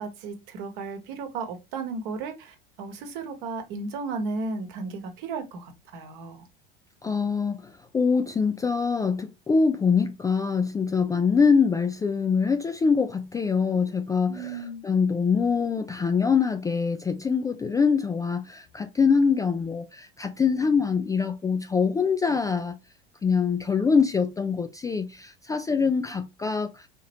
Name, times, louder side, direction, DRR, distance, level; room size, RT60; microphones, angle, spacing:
voice 1, 0.0-6.4 14.3-14.8, right 4 dB, 60° right, 1.1 m, -34 dB
voice 2, 7.0-22.8 23.2-26.9, left 5 dB, 10° left, 0.3 m, -24 dB
4.0 x 2.9 x 2.9 m
figure-of-eight pair, 75°, 29 cm